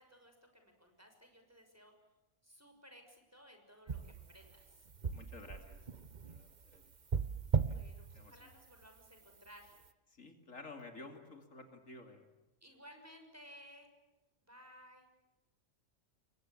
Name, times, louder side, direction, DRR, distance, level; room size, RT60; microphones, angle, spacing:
voice 1, 0.0-1.9 2.4-4.9 7.7-9.8 12.6-13.9 14.4-15.1, equal, 10° right, 4 dB, 6.3 m, -58 dB
sound 1, 3.9-9.1 9.3-9.9, right 6 dB, 35° right, 1.1 m, -38 dB
voice 2, 5.1-5.8 6.3-6.8 7.7-7.8 8.1-8.3 10.2-12.3, left 3 dB, 75° left, 5 dB, 3.2 m, -52 dB
29.0 x 23.0 x 8.8 m, 1.0 s
omnidirectional pair, 1.4 m